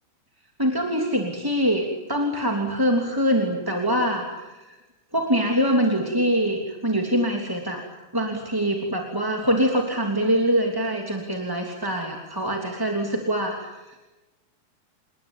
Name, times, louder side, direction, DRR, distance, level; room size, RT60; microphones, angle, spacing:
voice 1, 0.6-4.8 5.1-7.8 8.1-14.0, equal, 5° right, 1 dB, 2.3 m, -24 dB
28.5 x 21.5 x 8.8 m, 1.1 s
omnidirectional pair, 4.8 m